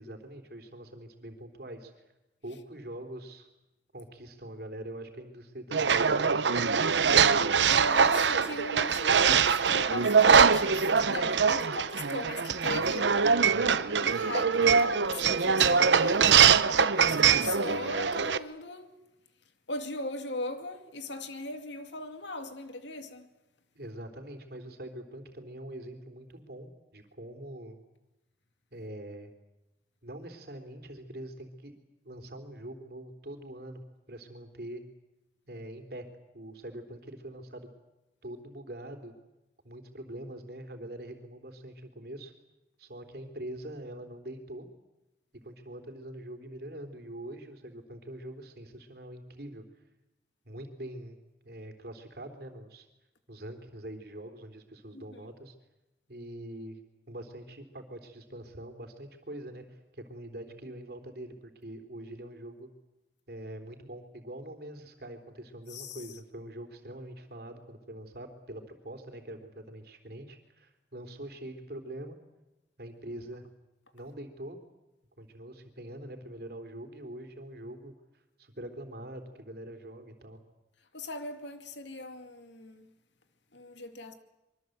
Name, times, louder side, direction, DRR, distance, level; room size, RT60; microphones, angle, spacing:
voice 1, 0.0-1.9 2.4-3.5 3.9-5.8 6.1-7.2 23.8-27.8 28.7-29.3 30.0-31.7 32.0-33.8 34.1-34.8 35.5-36.1 36.3-37.7 38.2-39.1 39.6-42.3 42.8-44.7 45.4-49.6 50.5-51.2 51.4-52.9 53.3-55.5 56.1-56.8 57.1-62.7 63.3-72.2 72.8-73.5 73.9-74.6 75.2-77.9 78.4-80.4, right 1 dB, 55° right, 3.5 m, -43 dB
sound 1, 5.7-18.4, right 6 dB, 80° right, 0.8 m, -23 dB
voice 2, 7.7-18.9 19.7-23.3 54.9-55.2 65.7-66.0 80.9-82.9 83.5-84.1, left 2 dB, 80° left, 2.4 m, -39 dB
25.0 x 23.5 x 8.0 m
head